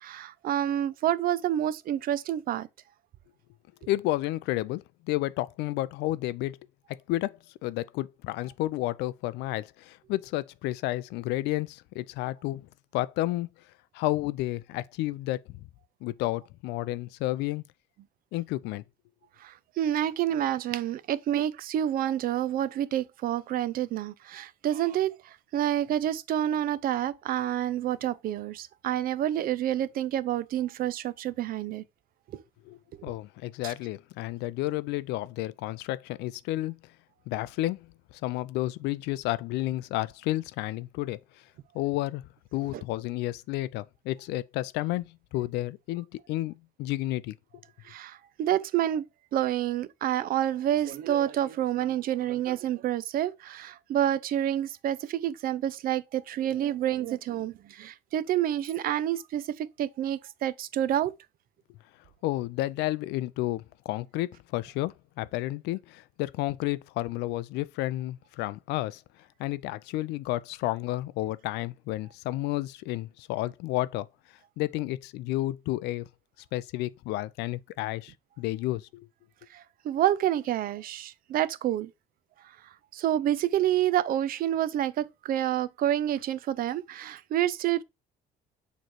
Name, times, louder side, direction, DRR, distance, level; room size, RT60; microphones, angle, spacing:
voice 1, 0.0-2.7 19.4-31.8 32.3-32.4 33.0-33.1 33.6-33.7 42.7-42.8 47.9-49.0 49.3-61.1 79.5-81.9 82.9-87.8, right 11 dB, 60° right, 0.5 m, -28 dB
voice 2, 3.9-6.6 7.1-12.7 12.9-13.5 13.9-15.4 16.0-17.6 18.3-18.8 32.7-36.8 37.3-37.9 38.2-41.2 41.7-47.3 62.2-69.0 69.4-74.1 74.6-76.1 76.5-79.1, left 17 dB, 90° left, 0.4 m, -31 dB
6.6 x 3.2 x 4.4 m
cardioid pair, 110°, 17 cm